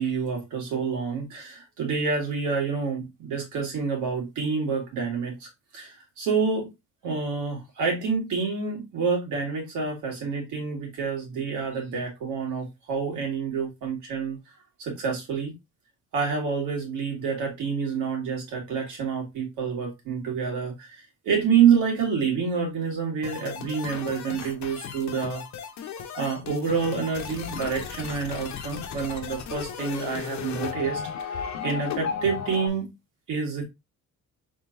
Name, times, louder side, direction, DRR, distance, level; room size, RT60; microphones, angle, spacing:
voice 1, 0.0-6.7 7.0-14.4 14.8-15.5 16.1-25.4 26.2-31.3 31.6-32.9 33.3-33.6, right 6 dB, 85° right, 2.1 m, -28 dB
sound 1, 23.2-32.7, left 7 dB, 65° left, 0.9 m, -35 dB
3.9 x 3.7 x 2.6 m
cardioid pair, 90°, 30 cm